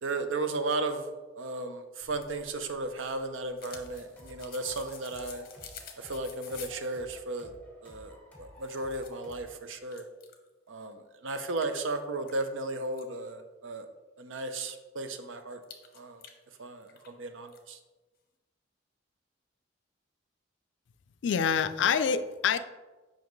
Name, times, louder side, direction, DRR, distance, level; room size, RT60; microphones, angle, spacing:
voice 1, 0.0-5.5 6.0-7.5 7.8-10.1 10.7-13.9 14.2-15.6 15.9-16.2 16.6-17.8, right 2 dB, 85° right, 8 dB, 0.6 m, -35 dB
sound 1, 2.0-6.9 8.1-8.2 8.6-9.4 9.9-10.5 10.9-11.0 11.6-13.0 15.6-17.1 17.4-17.6, left 7 dB, 50° left, 0.8 m, -50 dB
sound 2, 3.7-9.5, equal, 10° left, 1.5 m, -53 dB
voice 2, 21.2-22.6, left 7 dB, 70° left, 12 dB, 0.4 m, -26 dB
7.2 x 5.1 x 3.1 m, 1.2 s
head